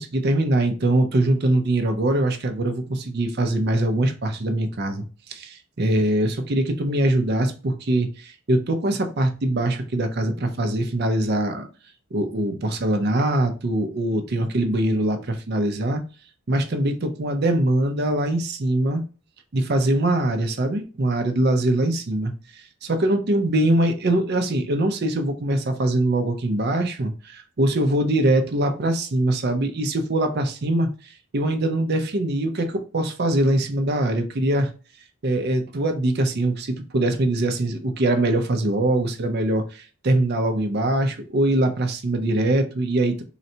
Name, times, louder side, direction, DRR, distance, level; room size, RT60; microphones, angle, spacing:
voice 1, 0.0-5.0 5.3-11.7 12.1-16.0 16.5-19.0 19.5-22.3 22.9-30.9 31.3-34.7 35.2-43.2, right 1 dB, 50° right, 0.6 m, -22 dB
3.9 x 2.1 x 2.7 m
head